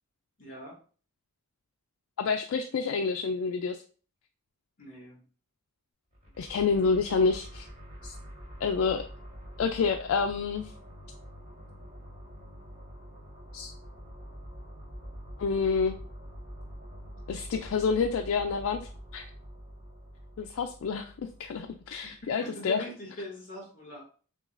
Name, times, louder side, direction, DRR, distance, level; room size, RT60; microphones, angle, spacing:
voice 1, 0.4-0.8 4.8-5.2 22.0-22.1 22.4-24.0, left 1 dB, 40° left, -3 dB, 2.0 m, -42 dB
voice 2, 2.2-3.8 6.4-7.7 8.0-8.1 8.6-9.0 9.6-10.7 13.5-13.7 15.4-16.0 17.3-18.8 19.1-19.3 20.4-21.1 21.4-22.8, left 5 dB, 60° left, 5 dB, 0.3 m, -28 dB
sound 1, 6.1-22.3, equal, 25° right, 1.6 m, -46 dB
5.9 x 2.3 x 2.5 m, 0.40 s
head